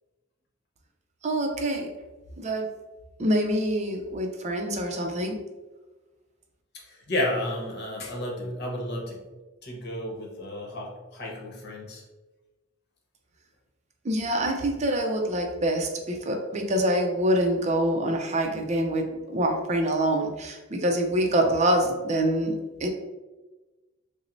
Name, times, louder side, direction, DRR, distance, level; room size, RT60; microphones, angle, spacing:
voice 1, 1.2-1.9 2.4-2.7 3.2-5.4 14.0-22.5 22.8-22.9, right 1 dB, 35° right, 2 dB, 0.5 m, -25 dB
voice 2, 7.1-9.2 9.6-12.0, left 1 dB, 55° left, -1 dB, 0.9 m, -32 dB
6.0 x 2.0 x 2.6 m, 1.1 s
head